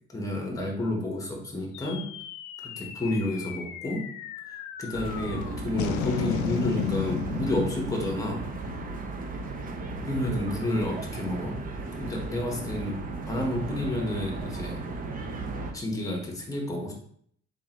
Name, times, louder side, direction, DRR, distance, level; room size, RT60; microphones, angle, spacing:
voice 1, 0.1-2.1 2.6-4.1 4.8-8.4 10.0-11.6 12.0-13.0 13.3-14.8 15.7-16.9, left 1 dB, 10° left, 0 dB, 1.0 m, -30 dB
sound 1, 1.7-10.3, left 9 dB, 85° left, 0.4 m, -35 dB
sound 2, 4.9-15.7, right 3 dB, 30° right, 0.6 m, -36 dB
3.6 x 3.3 x 3.0 m, 0.62 s
cardioid pair, 125°, 29 cm